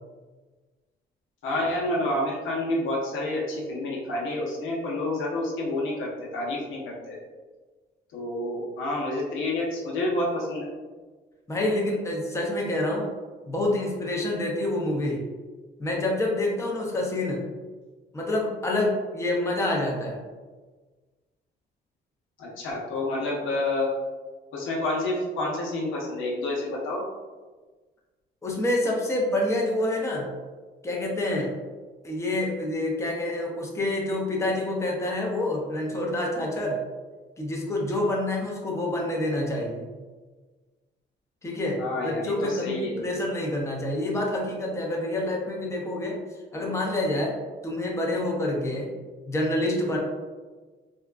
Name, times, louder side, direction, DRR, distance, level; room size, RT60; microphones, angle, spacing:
voice 1, 1.4-7.2 8.1-10.7 22.4-23.9 24.5-27.0 41.8-43.1, left 1 dB, 80° left, -3 dB, 0.8 m, -29 dB
voice 2, 11.5-13.1 13.5-15.2 15.8-17.4 18.1-20.2 28.4-30.3 30.8-31.5 32.0-36.8 37.4-39.9 41.4-46.2 46.5-47.4 47.6-48.9 49.3-50.0, left 1 dB, 15° left, -2 dB, 0.7 m, -27 dB
3.6 x 2.2 x 2.4 m, 1.3 s
cardioid pair, 90°, 20 cm